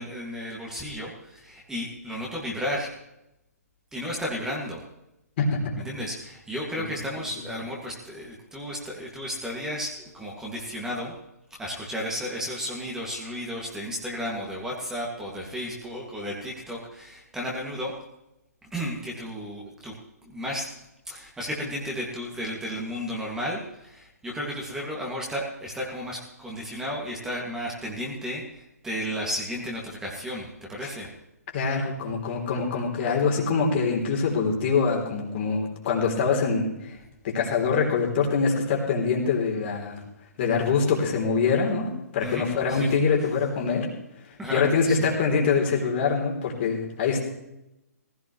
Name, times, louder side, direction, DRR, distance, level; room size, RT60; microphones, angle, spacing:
voice 1, 0.0-2.9 3.9-4.8 5.8-11.1 11.6-17.9 18.7-19.9 20.2-20.7 21.1-31.1 42.2-42.9 44.4-45.0, equal, 5° right, -3 dB, 2.2 m, -33 dB
voice 2, 31.5-37.0 37.2-40.0 40.4-43.9 44.5-47.2, left 5 dB, 40° left, 0 dB, 3.4 m, -24 dB
17.5 x 15.5 x 3.2 m, 0.88 s
figure-of-eight pair, 135°, 9 cm